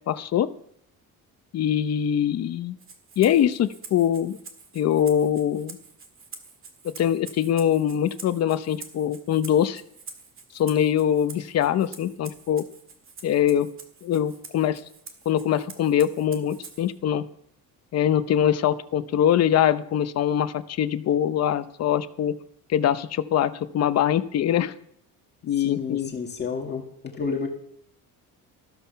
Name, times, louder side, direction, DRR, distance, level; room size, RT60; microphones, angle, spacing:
voice 1, 0.1-0.5 1.5-2.8 3.2-4.4 4.7-5.8 6.8-9.8 10.5-12.6 13.2-13.7 14.0-14.8 15.3-17.2 17.9-22.3 22.7-24.7 25.4-26.1, left 10 dB, 45° left, 12 dB, 0.8 m, -23 dB
Rattle (instrument), 2.8-17.0, right 5 dB, 35° right, 1.8 m, -46 dB
voice 2, 25.6-27.5, left 5 dB, 30° left, 1 dB, 1.9 m, -30 dB
14.0 x 13.0 x 5.7 m, 0.68 s
cardioid pair, 170°, 35 cm